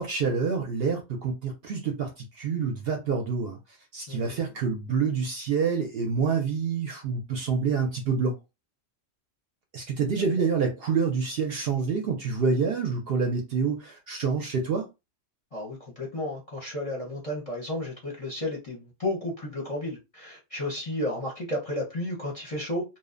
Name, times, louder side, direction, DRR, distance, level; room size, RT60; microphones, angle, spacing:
voice 1, 0.0-3.6 3.9-8.4 9.7-14.9, right 5 dB, 60° right, 0.7 m, -27 dB
voice 2, 4.1-4.4 10.4-10.5 15.5-22.8, left 1 dB, 35° left, 0.6 m, -33 dB
2.7 x 2.0 x 2.4 m
omnidirectional pair, 1.3 m